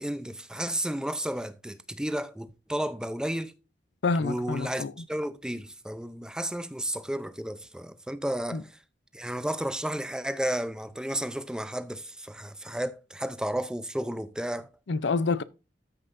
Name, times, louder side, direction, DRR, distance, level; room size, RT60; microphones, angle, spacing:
voice 1, 0.0-3.5 4.2-8.7 9.1-14.7, right 1 dB, 5° right, 0.5 m, -32 dB
voice 2, 4.0-4.9 8.5-8.6 14.9-15.4, left 4 dB, 85° left, 0.5 m, -27 dB
13.5 x 5.5 x 2.6 m
head